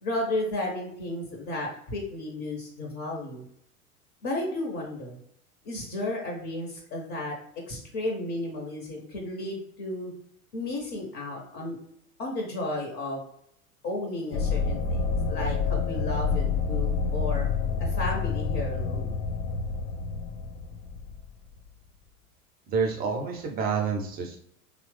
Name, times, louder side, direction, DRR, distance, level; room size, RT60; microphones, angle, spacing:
voice 1, 0.0-3.4 4.2-5.2 5.6-7.4 7.7-10.1 10.5-11.8 12.2-13.2 13.8-17.5 17.8-19.2, left 2 dB, 40° left, 0 dB, 0.8 m, -33 dB
sound 1, 14.3-21.5, left 5 dB, 70° left, 0.6 m, -28 dB
voice 2, 22.7-24.4, right 5 dB, 20° right, 2 dB, 0.4 m, -28 dB
3.0 x 2.0 x 3.1 m, 0.71 s
figure-of-eight pair, 85°, 44 cm